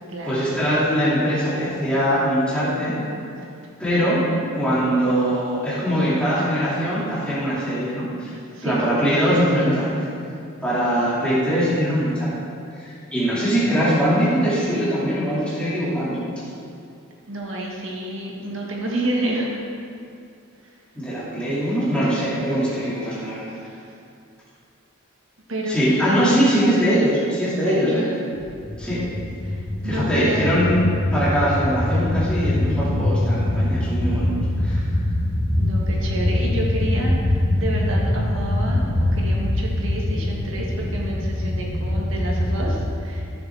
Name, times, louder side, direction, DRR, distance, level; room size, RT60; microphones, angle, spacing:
voice 1, 0.2-2.9 3.8-4.3 4.6-8.3 8.6-9.9 10.6-12.3 12.8-16.3 20.9-23.5 25.7-28.1 28.8-29.0 29.8-34.3 34.6-34.9, equal, 5° left, -10 dB, 2.3 m, -22 dB
voice 2, 8.5-8.9 17.3-19.5 23.6-23.8 25.5-26.2 27.7-28.0 29.4-30.6 35.6-43.3, right 1 dB, 65° right, -3 dB, 1.7 m, -29 dB
sound 1, 28.4-42.9, left 1 dB, 20° left, 0.6 m, -23 dB
13.5 x 6.9 x 3.5 m, 2.4 s
head